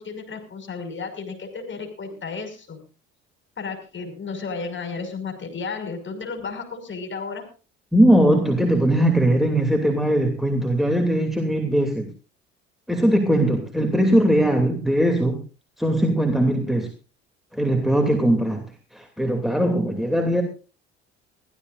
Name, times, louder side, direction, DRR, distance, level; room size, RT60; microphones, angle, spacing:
voice 1, 0.0-2.8 3.6-7.4, left 4 dB, 35° left, 6 dB, 5.8 m, -33 dB
voice 2, 7.9-12.1 12.9-15.4 15.8-16.9 17.5-18.7 18.9-20.4, right 1 dB, ahead, 4 dB, 2.8 m, -20 dB
23.0 x 15.5 x 2.6 m, 0.34 s
hypercardioid pair, 65°, 32 cm